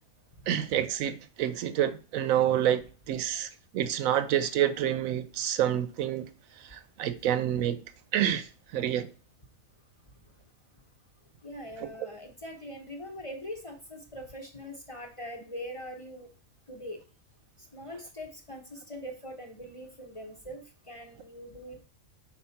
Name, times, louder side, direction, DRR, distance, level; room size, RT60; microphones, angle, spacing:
voice 1, 0.5-2.8 3.1-6.3 6.7-7.8 8.1-8.5 8.7-9.1 11.8-11.9, right 10 dB, 80° right, 1.0 m, -28 dB
voice 2, 11.4-16.3 16.7-17.0 17.7-21.9, equal, 30° left, 0.7 m, -42 dB
4.3 x 4.1 x 5.6 m
omnidirectional pair, 1.4 m